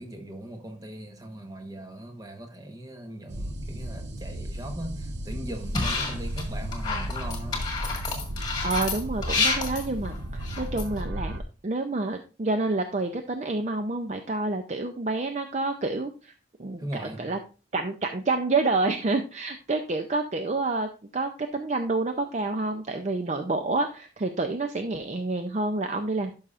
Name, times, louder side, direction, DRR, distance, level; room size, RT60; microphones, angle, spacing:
voice 1, 0.0-7.6 16.8-17.3, right 1 dB, 20° right, 1.0 m, -39 dB
sound 1, 3.3-11.4, right 1 dB, 70° right, 0.8 m, -34 dB
sound 2, 5.7-6.4 6.7-11.0, left 4 dB, 25° left, 1.7 m, -29 dB
voice 2, 8.6-16.3 16.6-17.4 17.7-26.3, right 3 dB, 40° right, 0.5 m, -28 dB
11.5 x 5.5 x 2.5 m
head